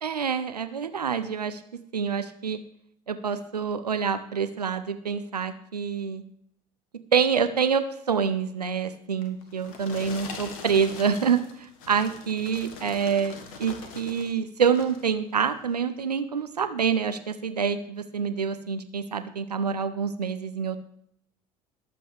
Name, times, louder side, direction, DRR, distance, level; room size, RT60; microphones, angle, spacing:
voice 1, 0.0-1.6 1.9-2.6 3.1-6.2 7.1-20.8, right 6 dB, 80° right, 11 dB, 0.7 m, -27 dB
sound 1, 9.2-14.3 14.7-15.1 15.7-15.8, left 4 dB, 60° left, 1.6 m, -42 dB
20.0 x 7.7 x 3.4 m, 0.71 s
figure-of-eight pair, 70°, 20 cm